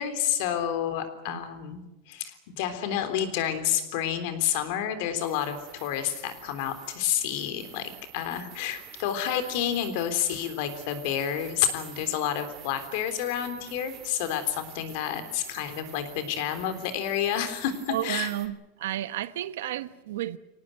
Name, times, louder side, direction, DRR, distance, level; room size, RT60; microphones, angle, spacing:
voice 1, 0.0-1.8 2.1-18.3, left 10 dB, 60° left, 3.6 m, -29 dB
sound 1, 5.2-18.5, right 10 dB, 35° right, 2.8 m, -48 dB
voice 2, 17.9-20.4, right 13 dB, 85° right, 1.2 m, -32 dB
25.0 x 18.0 x 9.2 m
supercardioid pair, 160°, 0 cm